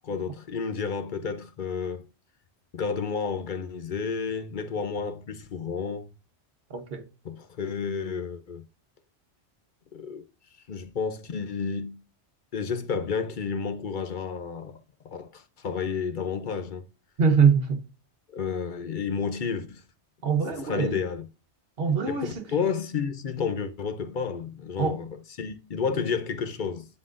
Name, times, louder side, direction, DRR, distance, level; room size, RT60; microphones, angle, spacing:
voice 1, 0.0-2.1 2.7-6.1 7.2-8.6 9.9-10.2 10.7-12.0 12.5-14.8 15.0-16.8 18.3-19.8 20.6-21.2 22.1-25.1 25.4-26.9, left 5 dB, 50° left, 0.8 m, -31 dB
voice 2, 6.7-7.0 17.2-17.8 20.2-21.0 21.8-22.5 24.8-25.0, right 6 dB, 60° right, 1.2 m, -23 dB
11.0 x 3.9 x 2.5 m
omnidirectional pair, 1.1 m